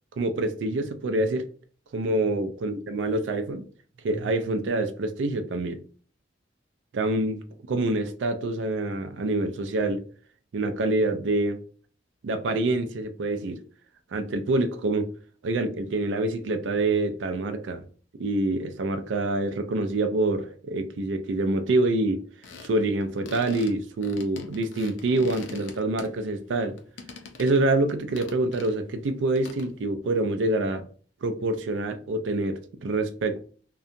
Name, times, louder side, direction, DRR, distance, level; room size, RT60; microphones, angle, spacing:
voice 1, 0.2-1.4 1.9-3.6 4.0-5.8 6.9-7.4 7.7-10.0 10.5-11.6 12.2-13.6 14.1-15.1 15.4-17.8 18.2-22.2 22.6-26.8 27.4-30.9 31.2-33.4, right 2 dB, 80° right, 0.4 m, -26 dB
sound 1, 22.4-26.5 26.8-27.7 28.2-28.7 29.4-29.7, left 4 dB, 90° left, 0.5 m, -43 dB
2.7 x 2.2 x 2.5 m
head